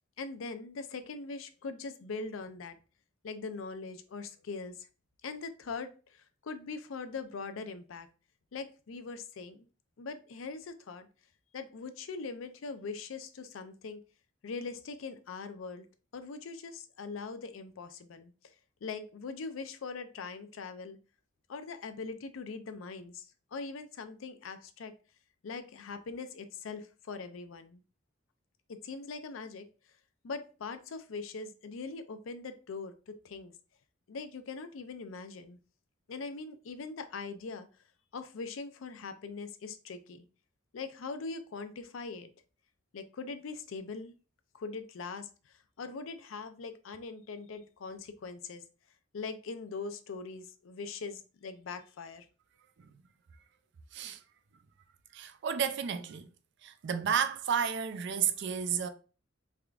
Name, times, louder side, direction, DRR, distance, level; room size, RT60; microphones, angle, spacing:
voice 1, 0.2-2.8 3.2-4.7 5.2-8.1 8.5-9.7 10.0-11.1 11.5-14.0 14.4-15.9 16.1-18.3 18.8-21.0 21.5-24.9 25.4-27.8 28.7-29.7 30.2-33.5 34.1-35.6 36.1-37.7 38.1-40.2 40.7-42.3 42.9-44.1 44.6-45.3 45.8-48.6 49.1-52.3, left 4 dB, 85° left, 0.5 m, -41 dB
voice 2, 53.9-54.2 55.1-56.3 56.6-58.9, right 7 dB, 60° right, 0.4 m, -32 dB
3.6 x 3.3 x 2.4 m
head